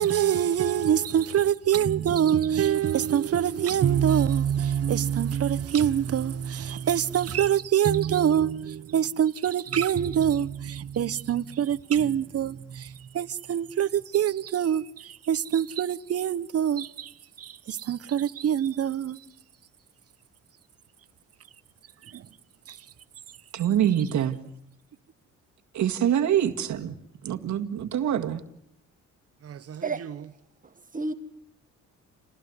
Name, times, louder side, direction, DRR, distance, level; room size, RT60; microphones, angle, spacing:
voice 1, 0.0-14.8 15.3-17.1 17.4-19.2 22.1-22.2 29.4-29.8, right 9 dB, 50° right, 1.1 m, -25 dB
voice 2, 23.5-24.4 25.7-27.0 27.2-28.4, right 10 dB, 70° right, 2.0 m, -25 dB
voice 3, 30.6-31.1, right 3 dB, 25° right, 1.7 m, -31 dB
28.5 x 19.5 x 9.6 m
cardioid pair, 90°, 30 cm